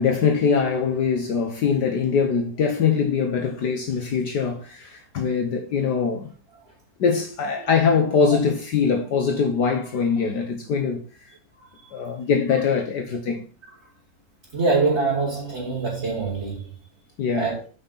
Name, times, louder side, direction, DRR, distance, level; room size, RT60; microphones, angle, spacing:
voice 1, 0.0-6.3 7.0-11.0 11.9-13.4 17.2-17.5, left 6 dB, 65° left, 1.6 m, -22 dB
voice 2, 14.5-16.7 17.3-17.6, right 3 dB, 35° right, 2.8 m, -24 dB
7.9 x 5.9 x 5.6 m
omnidirectional pair, 2.0 m